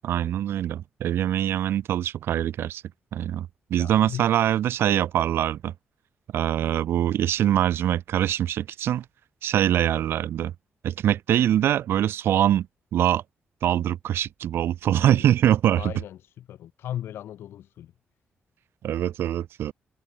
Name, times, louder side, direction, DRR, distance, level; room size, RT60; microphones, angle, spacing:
voice 1, 0.0-2.8 3.1-5.7 6.3-9.0 9.4-10.5 10.8-12.7 12.9-13.2 13.6-15.9 18.8-19.7, right 11 dB, 85° right, 1.6 m, -23 dB
voice 2, 3.8-4.3 14.9-15.3 15.7-17.9, left 11 dB, 85° left, 4.5 m, -37 dB
cardioid pair, 90°, 4 cm